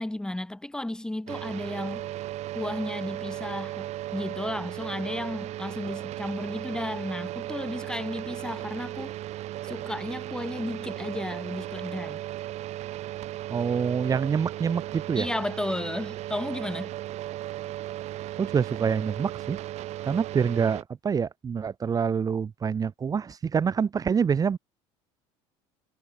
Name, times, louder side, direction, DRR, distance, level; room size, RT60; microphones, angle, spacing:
voice 1, 0.0-2.1 2.5-9.1 9.6-12.2 15.2-16.9, left 1 dB, 5° left, 3.4 m, -33 dB
sound 1, 1.3-20.8, right 14 dB, 55° right, 4.4 m, -36 dB
voice 2, 13.5-15.3 18.4-19.6 20.0-24.6, right 6 dB, 25° right, 2.2 m, -26 dB
cardioid pair, 125°, 14 cm